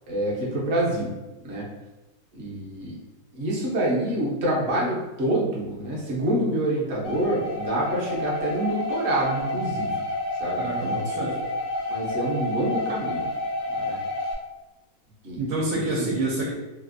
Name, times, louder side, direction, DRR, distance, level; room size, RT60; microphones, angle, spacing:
voice 1, 0.1-1.1 1.4-1.7 2.3-3.0 3.3-10.0 10.4-10.7 11.9-13.3 13.8-14.0 15.2-15.4 15.7-16.1, right 1 dB, 55° right, -5 dB, 0.8 m, -27 dB
sound 1, 7.0-14.3, left 2 dB, 65° left, 0.8 m, -29 dB
voice 2, 10.6-11.4 15.4-16.5, right 2 dB, 75° right, -3 dB, 1.2 m, -27 dB
3.4 x 2.5 x 2.5 m, 1.1 s
omnidirectional pair, 2.0 m